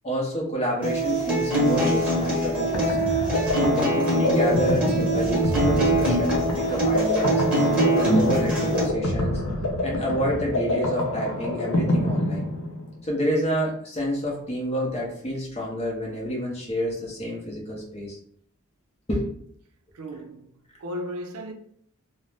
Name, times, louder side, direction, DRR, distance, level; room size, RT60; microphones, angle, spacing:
voice 1, 0.0-3.1 3.6-7.4 8.0-9.4 9.8-12.5 13.0-18.2 19.1-19.4, equal, 30° left, 0.7 m, -29 dB
Acoustic guitar, 0.8-8.8, right 1 dB, 5° right, 1.1 m, -23 dB
sound 1, 2.3-13.0, left 1 dB, 75° left, 0.6 m, -26 dB
voice 2, 19.9-20.5 20.8-21.5, equal, 80° right, 0.4 m, -34 dB
2.6 x 2.0 x 3.2 m
head